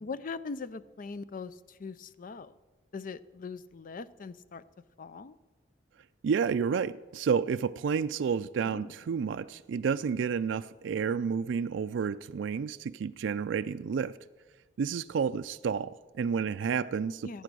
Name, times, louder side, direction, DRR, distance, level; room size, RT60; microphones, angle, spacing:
voice 1, 0.0-2.6 2.9-4.6 5.0-5.4 8.6-8.9 17.2-17.4, left 4 dB, 45° left, 16 dB, 0.5 m, -41 dB
voice 2, 6.2-14.2 14.8-17.4, right 6 dB, 75° right, 10 dB, 0.3 m, -30 dB
16.5 x 8.4 x 6.2 m, 1.2 s
head